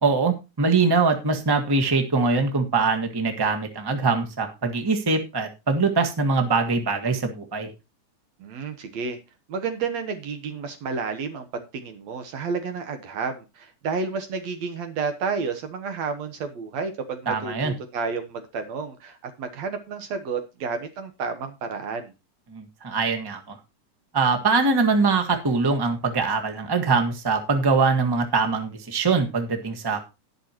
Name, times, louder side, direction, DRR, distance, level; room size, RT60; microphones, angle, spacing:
voice 1, 0.0-7.7 17.3-17.7 22.5-23.6 24.1-30.1, right 4 dB, 30° right, 5 dB, 0.4 m, -23 dB
voice 2, 8.4-9.2 9.5-22.1, right 5 dB, 65° right, 7 dB, 2.3 m, -31 dB
19.0 x 6.6 x 3.0 m, 0.28 s
omnidirectional pair, 3.5 m